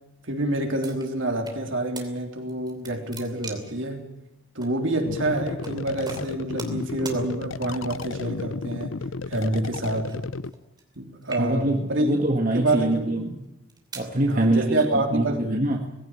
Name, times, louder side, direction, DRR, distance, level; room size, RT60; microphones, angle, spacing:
voice 1, 0.3-4.0 4.6-9.0 9.3-10.2 11.0-12.1 12.5-13.3 14.3-15.4, right 1 dB, 65° right, 2 dB, 3.6 m, -27 dB
sound 1, 0.8-1.6 2.0-2.1 2.5-3.8 4.6-4.7 5.6-5.8 6.1-6.8 7.1-7.2 7.9-8.4 9.4-11.0 11.2-11.8 12.5-12.8 13.4-14.1, right 4 dB, 20° right, 2.8 m, -41 dB
sound 2, 5.0-10.5, left 3 dB, 70° left, 0.7 m, -33 dB
voice 2, 11.4-13.4 14.0-14.6 14.9-15.9, right 1 dB, 40° right, 1 dB, 1.7 m, -24 dB
19.0 x 16.0 x 9.3 m, 0.91 s
head